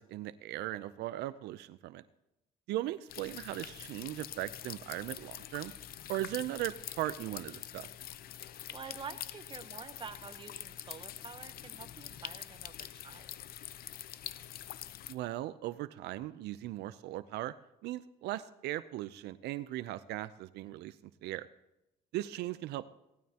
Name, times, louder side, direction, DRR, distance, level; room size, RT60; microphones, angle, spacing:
voice 1, 0.0-2.0 2.7-5.7 6.1-7.9 15.1-17.5 17.8-21.0 21.2-21.5 22.1-22.8, right 15 dB, 80° right, 14 dB, 0.5 m, -38 dB
sound 1, 3.1-15.1, left 12 dB, 60° left, 0.6 m, -45 dB
voice 2, 8.7-13.3, right 6 dB, 30° right, 9 dB, 1.0 m, -48 dB
18.0 x 12.5 x 2.9 m, 0.90 s
cardioid pair, 110°, 17 cm